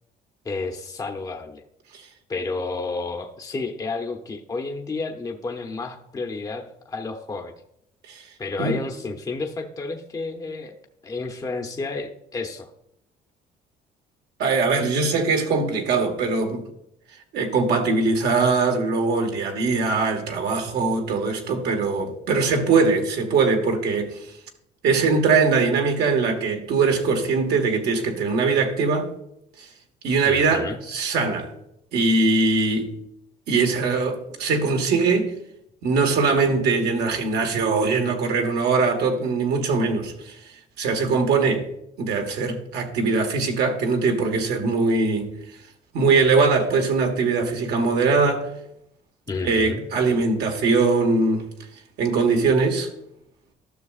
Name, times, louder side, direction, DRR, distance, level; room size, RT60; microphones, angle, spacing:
voice 1, 0.4-1.6 2.3-7.5 8.4-10.8 11.0-12.7 30.3-30.8 49.3-49.8, left 3 dB, 20° left, 0.7 m, -31 dB
voice 2, 14.4-16.6 17.3-24.2 24.8-29.1 29.6-29.7 30.0-31.5 31.9-32.9 33.5-35.3 35.8-40.4 40.8-41.7 42.0-45.3 45.9-48.5 49.4-51.5 52.0-52.9, right 4 dB, 75° right, 1.5 m, -21 dB
12.5 x 6.3 x 2.4 m
cardioid pair, 110°, 17 cm